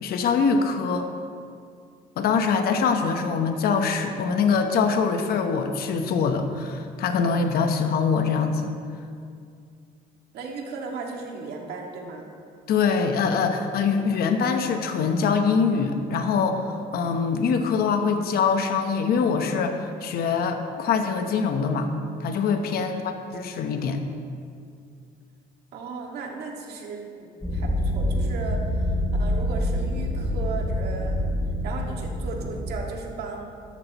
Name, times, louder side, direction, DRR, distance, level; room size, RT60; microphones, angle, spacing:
voice 1, 0.0-1.1 2.2-8.7 12.7-21.9 22.2-24.0, left 5 dB, 65° left, 6 dB, 1.0 m, -24 dB
voice 2, 10.3-12.3 22.7-23.2 25.7-28.7 29.2-31.2 31.6-33.5, right 4 dB, 70° right, 0 dB, 2.0 m, -36 dB
sound 1, 27.4-32.7, equal, 10° left, 2.5 m, -26 dB
13.0 x 12.5 x 3.0 m, 2.3 s
cardioid pair, 110°, 17 cm